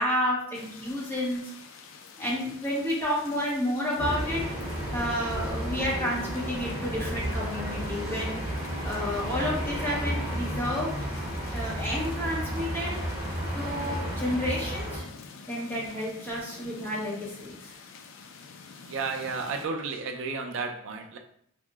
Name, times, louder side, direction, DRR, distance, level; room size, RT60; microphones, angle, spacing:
voice 1, 0.0-1.5 2.2-4.5 4.9-8.4 8.8-10.9 11.5-13.0 13.5-15.1 15.5-17.7, left 1 dB, 10° left, -6 dB, 0.7 m, -30 dB
sound 1, 0.5-19.7, left 4 dB, 60° left, 0.3 m, -46 dB
sound 2, 4.0-15.0, equal, 25° right, 1.0 m, -32 dB
voice 2, 18.7-21.2, right 4 dB, 60° right, 4 dB, 0.4 m, -33 dB
2.8 x 2.0 x 3.3 m, 0.67 s
head